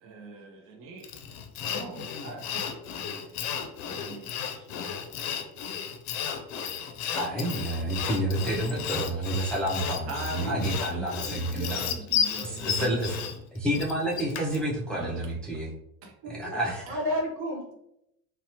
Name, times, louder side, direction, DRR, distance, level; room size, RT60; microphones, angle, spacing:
voice 1, 0.0-1.1 1.6-2.8 3.9-4.8 10.1-12.9 15.0-15.4 16.0-16.1 16.9-17.0, right 3 dB, 45° right, 1 dB, 0.6 m, -41 dB
Sawing, 1.0-14.6, left 8 dB, 65° left, 0.5 m, -33 dB
voice 2, 7.1-11.9 12.4-13.3 13.5-15.7 16.3-16.8, right 1 dB, 5° left, -4 dB, 0.3 m, -29 dB
voice 3, 16.2-16.6 16.8-17.7, equal, 75° right, -1 dB, 1.0 m, -31 dB
2.7 x 2.0 x 2.8 m, 0.79 s
cardioid pair, 120°, 31 cm